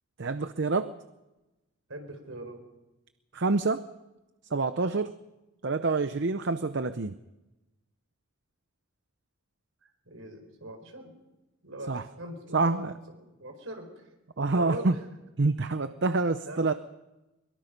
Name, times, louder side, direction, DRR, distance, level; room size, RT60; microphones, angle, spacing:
voice 1, 0.2-0.9 3.3-3.8 4.5-5.2 5.6-7.2 11.9-12.0 12.5-12.9 14.4-15.0 15.4-16.7, right 3 dB, 55° right, 11 dB, 0.7 m, -27 dB
voice 2, 1.9-2.6 9.8-11.1 11.6-14.1 14.5-15.0 16.4-16.8, right 1 dB, 75° right, 5 dB, 4.7 m, -41 dB
22.5 x 22.5 x 5.3 m, 1.0 s
head